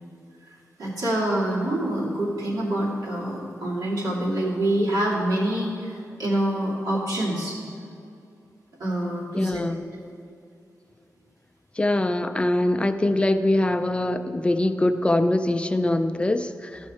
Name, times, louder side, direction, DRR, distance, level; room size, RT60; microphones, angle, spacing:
voice 1, 0.8-7.6 8.8-9.6, right 1 dB, 90° right, -6 dB, 2.6 m, -26 dB
voice 2, 9.4-9.8 11.8-16.8, left 1 dB, 20° left, 8 dB, 0.3 m, -23 dB
14.0 x 6.3 x 4.3 m, 2.5 s
wide cardioid pair, 165°, 6 cm